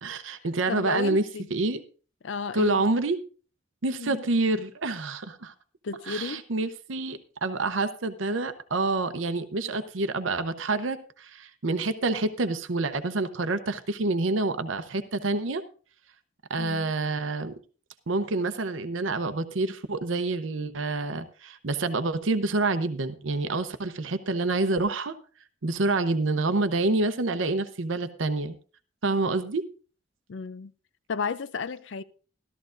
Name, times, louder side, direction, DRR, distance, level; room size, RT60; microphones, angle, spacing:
voice 1, 0.0-1.2 1.5-1.8 2.5-3.2 3.8-5.5 6.1-15.6 16.5-17.5 18.1-25.1 25.6-28.6 29.0-29.6, right 3 dB, 90° right, 0.8 m, -27 dB
voice 2, 0.7-1.5 2.2-2.8 4.0-4.2 5.8-6.4 16.6-16.9 30.3-30.7 31.1-32.0, left 5 dB, 70° left, 0.5 m, -33 dB
13.5 x 13.5 x 2.6 m
head